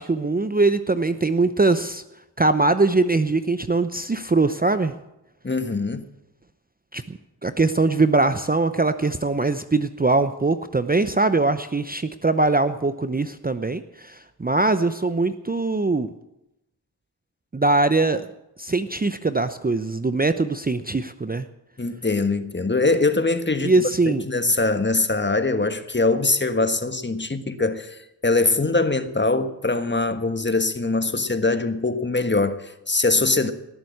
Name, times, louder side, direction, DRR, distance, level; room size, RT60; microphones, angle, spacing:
voice 1, 0.0-2.0 2.4-4.9 6.9-16.1 17.5-18.3 18.6-21.5 23.6-24.2, right 3 dB, 20° right, 0.8 m, -22 dB
voice 2, 5.4-6.0 21.8-33.5, left 3 dB, 25° left, 1.4 m, -22 dB
18.0 x 7.7 x 8.6 m
cardioid pair, 45°, 46 cm